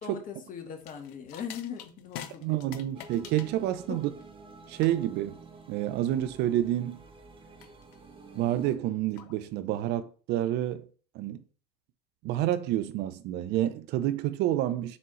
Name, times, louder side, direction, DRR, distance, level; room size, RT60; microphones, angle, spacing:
voice 1, 0.0-3.1 3.9-4.0, left 7 dB, 40° left, 1.8 m, -40 dB
sound 1, 0.8-9.8, left 10 dB, 65° left, 0.9 m, -48 dB
voice 2, 2.4-4.1 4.7-5.4 5.7-7.0 8.4-10.9 11.1-11.4 12.2-15.0, right 13 dB, 55° right, 0.7 m, -29 dB
sound 2, 2.9-8.8, right 4 dB, 25° right, 1.6 m, -50 dB
7.0 x 4.2 x 3.2 m
hypercardioid pair, 80°, 21 cm